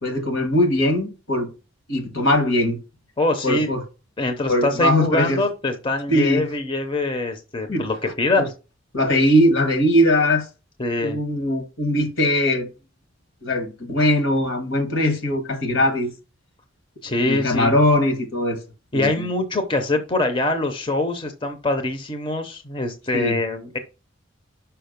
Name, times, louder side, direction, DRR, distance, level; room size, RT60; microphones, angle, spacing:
voice 1, 0.0-1.5 1.9-2.8 3.4-3.8 4.4-5.4 6.1-6.4 7.7-7.8 8.4-8.5 8.9-10.5 11.0-12.7 13.4-16.1 17.3-18.6 18.9-19.3 23.1-23.4, left 1 dB, 75° left, 1.6 m, -20 dB
voice 2, 3.2-3.7 4.2-8.5 10.8-11.2 17.0-17.7 18.9-23.8, left 2 dB, 25° left, 0.7 m, -24 dB
5.7 x 4.9 x 5.2 m
head